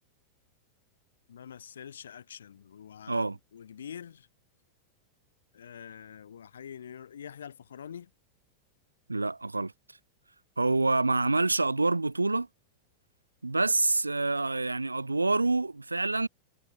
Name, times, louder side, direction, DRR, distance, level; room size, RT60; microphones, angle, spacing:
voice 1, 1.3-4.3 5.5-8.1, left 8 dB, 65° left, 1.5 m, -45 dB
voice 2, 3.1-3.4 9.1-9.7 10.6-12.5 13.4-16.3, right 3 dB, 80° right, 0.3 m, -27 dB
figure-of-eight pair, 90°, 0 cm